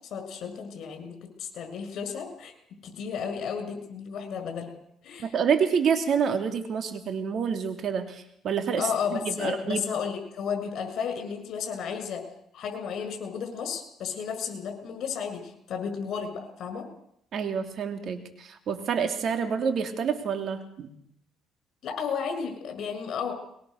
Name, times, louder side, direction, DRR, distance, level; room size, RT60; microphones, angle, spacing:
voice 1, 0.1-2.5 2.8-4.7 5.0-5.4 8.8-12.2 12.5-16.9 21.8-23.3, left 6 dB, 60° left, 7 dB, 6.9 m, -33 dB
voice 2, 5.2-8.8 9.1-9.8 17.3-20.9, right 6 dB, 55° right, 7 dB, 3.1 m, -28 dB
22.5 x 22.0 x 6.7 m, 0.70 s
cardioid pair, 105°, 0 cm